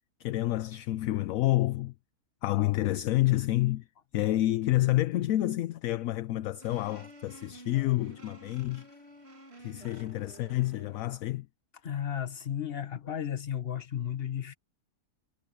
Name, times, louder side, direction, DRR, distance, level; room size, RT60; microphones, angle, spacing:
voice 1, 0.2-1.9 2.4-3.9 4.1-8.9 9.6-11.5, left 16 dB, 70° left, 0.9 m, -28 dB
sound 1, 6.6-11.2, right 2 dB, 40° right, 2.9 m, -51 dB
voice 2, 11.8-14.5, left 9 dB, 40° left, 1.4 m, -34 dB
omnidirectional pair, 1.7 m